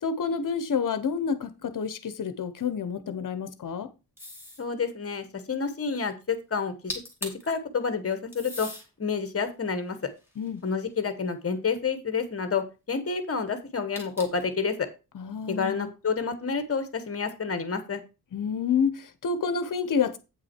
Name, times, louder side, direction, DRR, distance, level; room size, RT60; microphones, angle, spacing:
voice 1, 0.0-3.9 10.4-10.6 15.1-15.9 18.3-20.2, left 6 dB, 55° left, 0.9 m, -29 dB
sound 1, 4.2-4.7 6.6-6.7 6.9-7.5 8.3-8.9 9.5-11.0 13.9-14.5, left 1 dB, 5° right, 2.2 m, -39 dB
voice 2, 4.6-8.7 9.0-10.1 10.6-14.9 15.5-18.0, left 5 dB, 35° left, 1.2 m, -29 dB
8.5 x 6.0 x 4.4 m
wide cardioid pair, 180°, 39 cm